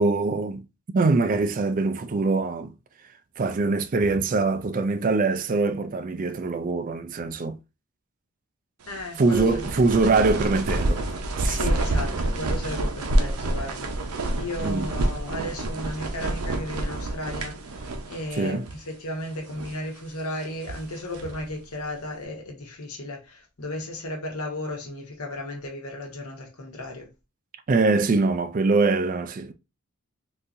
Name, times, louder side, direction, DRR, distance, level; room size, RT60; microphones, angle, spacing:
voice 1, 0.0-2.7 3.4-7.6 9.2-11.0 11.4-11.6 14.6-14.9 18.4-18.7 27.7-29.5, right 3 dB, 40° right, 0.4 m, -23 dB
voice 2, 8.9-9.7 11.4-27.1, left 1 dB, 85° left, 1.2 m, -35 dB
sound 1, 8.9-18.4 18.6-18.8 19.4-19.9 20.4-21.5, right 1 dB, 90° right, 0.6 m, -28 dB
3.9 x 2.7 x 2.6 m
head